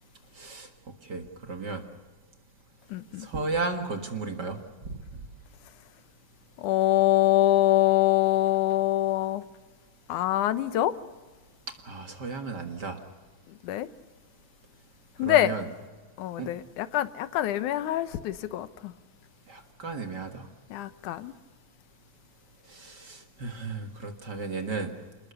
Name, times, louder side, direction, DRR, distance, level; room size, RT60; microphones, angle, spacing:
voice 1, 0.4-0.7 1.0-1.8 3.2-4.6 4.8-5.0 11.8-13.0 15.2-15.7 16.4-16.5 19.5-20.4 22.7-24.9, right 3 dB, 40° right, 2.0 m, -34 dB
voice 2, 2.9-3.3 6.6-9.4 10.1-10.9 13.6-13.9 15.2-15.5 16.2-18.9 20.7-21.3, left 14 dB, 85° left, 2.4 m, -24 dB
28.5 x 20.5 x 6.9 m
omnidirectional pair, 3.5 m